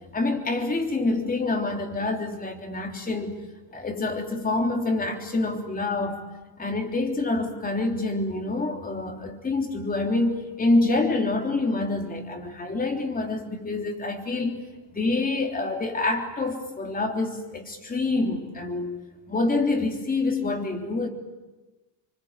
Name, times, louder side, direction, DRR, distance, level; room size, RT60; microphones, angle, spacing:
voice 1, 0.1-3.3 3.7-6.2 6.6-14.6 14.9-19.0 19.3-21.1, left 2 dB, 20° left, 3 dB, 3.3 m, -26 dB
26.5 x 24.5 x 8.9 m, 1.1 s
cardioid pair, 140°, 42 cm